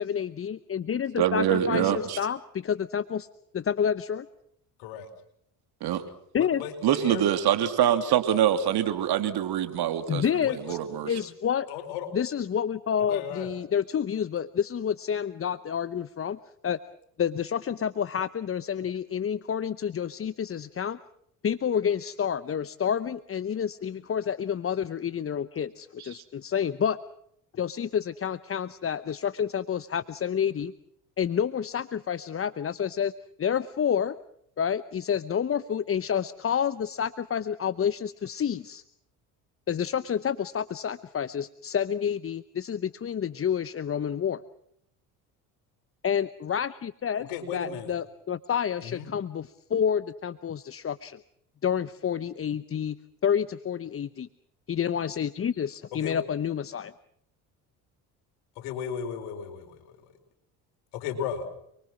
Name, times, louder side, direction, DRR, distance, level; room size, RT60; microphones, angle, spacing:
voice 1, 0.0-3.3 3.5-4.3 6.3-6.6 10.1-10.8 11.1-11.7 12.1-16.4 16.6-16.8 17.2-21.0 21.4-27.0 27.5-30.7 31.2-33.1 33.4-34.2 34.6-38.8 39.7-44.4 46.0-51.2 51.6-53.0 53.2-54.3 54.7-56.9, left 8 dB, 30° left, 16 dB, 0.9 m, -29 dB
voice 2, 1.2-2.2 5.8-6.0 6.8-10.2 10.6-11.1 26.1-26.2, right 10 dB, 60° right, 8 dB, 3.1 m, -24 dB
voice 3, 6.6-7.2 10.4-10.7 11.7-12.1 13.1-13.5 47.3-47.9 48.8-49.1 56.0-56.2 58.6-60.0 60.9-61.5, left 7 dB, 75° left, 6 dB, 4.8 m, -35 dB
29.5 x 23.0 x 6.2 m, 0.73 s
hypercardioid pair, 65°, 43 cm